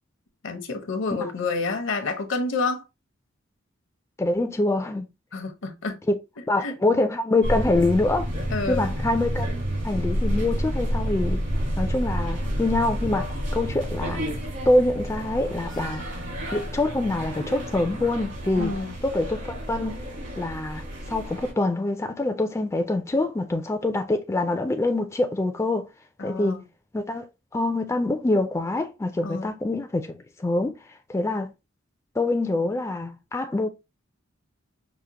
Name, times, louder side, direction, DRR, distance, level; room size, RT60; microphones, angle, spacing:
voice 1, 0.4-2.8 5.3-6.0 6.6-6.7 8.5-8.8 18.6-19.0 26.2-26.6 29.2-29.5, left 3 dB, 70° left, 0.7 m, -28 dB
voice 2, 4.2-5.1 6.1-6.2 6.5-8.3 8.7-9.5 9.8-11.4 11.8-14.3 14.7-16.2 16.5-18.7 19.0-20.0 20.4-25.9 26.2-26.6 26.9-27.2 27.5-30.8 31.1-31.5 32.2-33.7, left 2 dB, 15° left, 0.3 m, -25 dB
sound 1, 7.4-21.5, equal, 65° right, 1.4 m, -29 dB
4.9 x 2.1 x 2.8 m
head